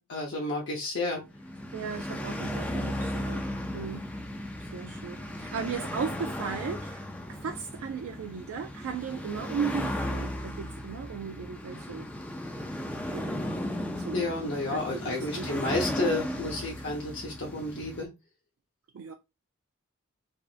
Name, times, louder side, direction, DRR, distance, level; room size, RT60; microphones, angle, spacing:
voice 1, 0.1-1.2 14.1-18.1, left 2 dB, 55° left, 0.7 m, -31 dB
sound 1, 1.2-18.0, left 1 dB, 5° left, 0.4 m, -36 dB
voice 2, 1.7-3.5 3.7-4.1 4.6-7.0 7.3-12.1 13.1-13.4 14.0-14.3 14.7-15.6 16.5-16.6 18.9-19.1, right 6 dB, 70° right, 0.3 m, -36 dB
3.4 x 2.5 x 2.4 m
head